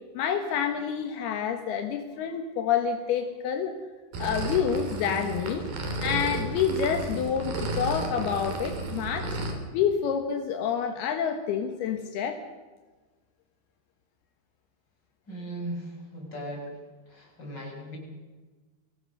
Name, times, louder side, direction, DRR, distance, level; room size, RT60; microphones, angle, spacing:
voice 1, 0.1-3.7 4.2-5.7 6.0-9.4 9.7-12.4, left 7 dB, 75° left, 6 dB, 3.2 m, -28 dB
sound 1, 4.1-9.5, right 2 dB, 65° right, 5.1 m, -33 dB
voice 2, 15.3-16.8 17.1-18.0, right 1 dB, 25° left, 0 dB, 6.1 m, -38 dB
24.0 x 18.0 x 6.6 m, 1.3 s
omnidirectional pair, 4.6 m